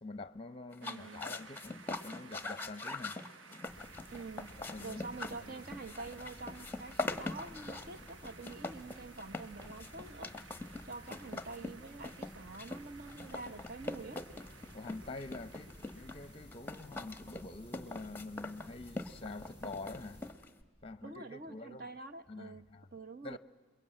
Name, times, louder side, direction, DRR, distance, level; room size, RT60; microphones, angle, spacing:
voice 1, 0.0-3.2 4.6-5.6 14.7-20.2 20.8-21.9 22.3-22.9 23.2-23.4, left 2 dB, 30° left, 0.7 m, -46 dB
sound 1, 0.7-20.6, left 2 dB, 10° left, 1.0 m, -43 dB
voice 2, 0.8-1.2 4.1-10.3 10.8-14.2 21.0-23.4, right 3 dB, 50° right, 1.1 m, -47 dB
sound 2, 0.8-17.4, right 5 dB, 70° right, 0.8 m, -58 dB
sound 3, 3.7-20.3, left 1 dB, 25° right, 6.0 m, -55 dB
28.5 x 22.0 x 8.8 m
head